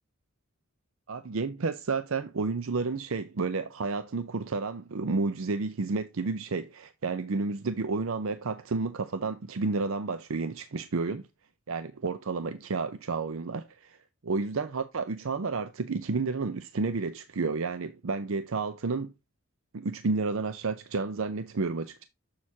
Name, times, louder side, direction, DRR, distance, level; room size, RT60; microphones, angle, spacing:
voice 1, 1.1-11.3 11.7-14.0 14.2-19.1 19.7-22.0, right 4 dB, 70° right, 0.6 m, -31 dB
7.4 x 6.4 x 2.8 m
head